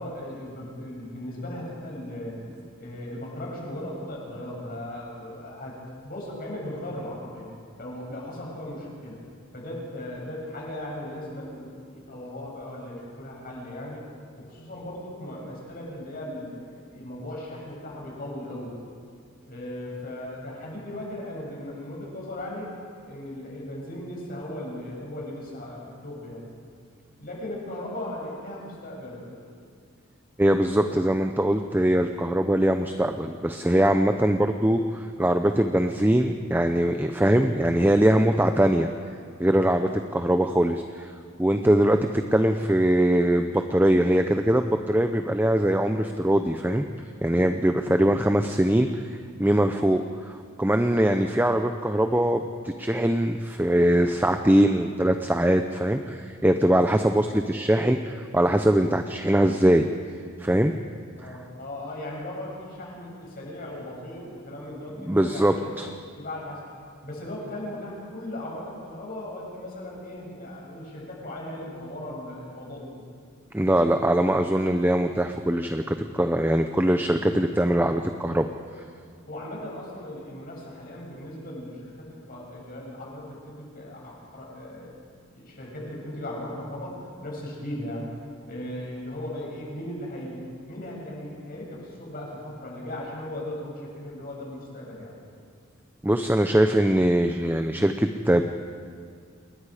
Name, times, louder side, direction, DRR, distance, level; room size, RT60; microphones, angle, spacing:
voice 1, 0.0-2.4 2.8-7.5 7.8-9.2 9.5-14.0 14.4-18.8 19.5-22.7 23.0-26.5 27.2-29.4 61.1-65.7 66.2-66.6 67.0-73.0 79.3-84.9 85.3-88.1 88.5-95.2, left 1 dB, 45° left, -3 dB, 7.4 m, -37 dB
voice 2, 30.4-38.9 39.4-41.1 41.4-46.8 47.2-49.0 49.4-59.8 60.4-60.7 65.0-65.9 73.5-78.5 96.0-98.4, right 1 dB, 10° right, 6 dB, 0.7 m, -22 dB
28.5 x 21.5 x 5.0 m, 2.1 s
head